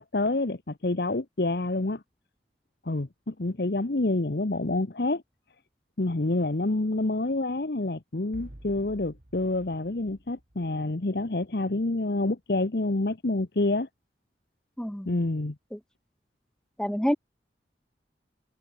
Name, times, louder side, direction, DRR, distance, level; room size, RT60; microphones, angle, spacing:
voice 1, 0.0-2.0 2.8-5.2 6.0-13.9 15.1-15.6, left 2 dB, 60° left, 1.0 m, -28 dB
sound 1, 8.3-11.2, right 1 dB, 50° right, 2.1 m, -49 dB
voice 2, 14.8-15.1 15.7-15.8 16.8-17.2, equal, 5° left, 0.6 m, -27 dB
head